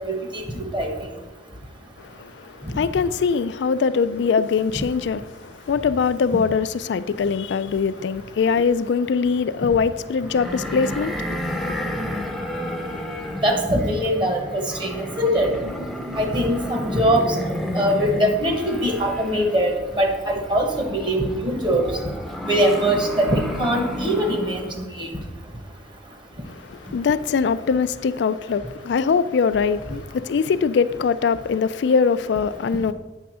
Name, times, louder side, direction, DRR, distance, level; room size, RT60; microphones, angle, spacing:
voice 1, 0.5-0.9 13.4-14.4 14.8-15.5 16.2-17.2 17.7-19.7 20.0-21.8 22.5-24.6 25.0-25.1, equal, 25° right, 1.0 m, -21 dB
voice 2, 2.0-11.8 26.4-32.9, left 5 dB, 70° left, 0.3 m, -22 dB
sound 1, 10.2-24.8, left 1 dB, ahead, 0.6 m, -31 dB
8.2 x 3.5 x 6.1 m
head